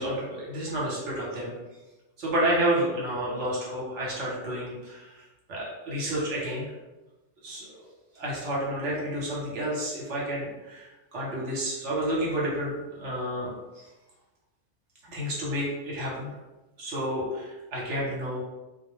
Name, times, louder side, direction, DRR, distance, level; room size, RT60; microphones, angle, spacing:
voice 1, 0.0-1.5 2.2-6.7 7.4-7.9 8.1-13.5 13.7-13.9 15.1-16.3 16.8-18.4, right 1 dB, 70° right, -5 dB, 1.1 m, -30 dB
2.3 x 2.1 x 2.9 m, 1.1 s
omnidirectional pair, 1.3 m